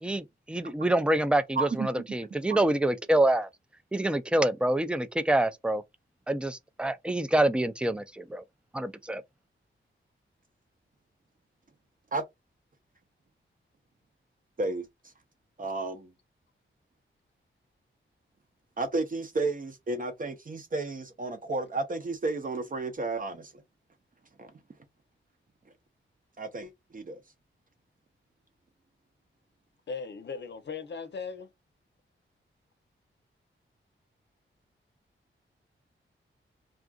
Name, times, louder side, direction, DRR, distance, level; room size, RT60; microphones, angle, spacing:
voice 1, 0.0-3.5 3.9-5.8 6.3-8.4 8.7-9.2, right 1 dB, 5° right, 0.3 m, -26 dB
voice 2, 1.6-2.1 2.5-2.6 12.1-12.2 14.6-14.9 15.6-16.1 18.8-23.5 24.4-24.5 26.4-27.2, right 3 dB, 40° right, 0.6 m, -32 dB
voice 3, 29.9-31.5, left 5 dB, 55° left, 0.7 m, -38 dB
3.5 x 2.5 x 2.3 m
wide cardioid pair, 100°, 21 cm